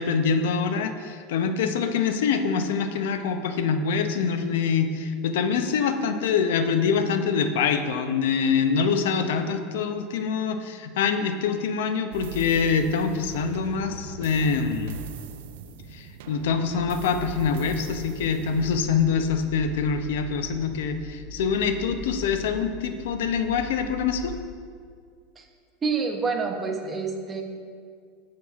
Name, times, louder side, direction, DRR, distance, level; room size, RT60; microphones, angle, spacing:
voice 1, 0.0-15.0 15.9-24.3, left 6 dB, 85° left, 8 dB, 0.5 m, -25 dB
sound 1, 12.1-18.9, right 6 dB, 75° right, 0.4 m, -40 dB
sound 2, 17.2-24.4, left 2 dB, 30° left, 0.6 m, -42 dB
voice 2, 25.8-27.4, right 4 dB, 15° right, 3 dB, 0.5 m, -27 dB
11.0 x 4.7 x 2.4 m, 2.1 s
supercardioid pair, 165°, 0 cm